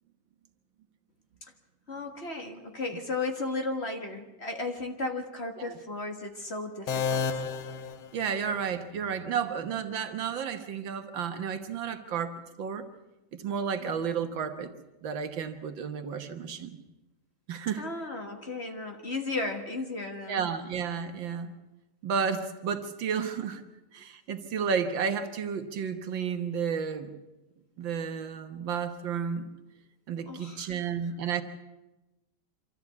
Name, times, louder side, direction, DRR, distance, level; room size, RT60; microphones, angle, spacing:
voice 1, 1.9-7.3 13.8-14.0 17.8-20.5 30.3-30.7, left 3 dB, 35° left, 4 dB, 1.8 m, -35 dB
sound 1, 6.9-8.8, left 5 dB, 85° left, 1.8 m, -32 dB
voice 2, 8.1-12.8 13.3-14.7 15.0-16.8 17.5-17.8 20.3-21.5 22.0-23.6 23.9-27.1 27.8-29.5 30.1-31.4, right 6 dB, 70° right, 8 dB, 1.9 m, -32 dB
25.5 x 14.0 x 8.2 m, 1.0 s
omnidirectional pair, 2.2 m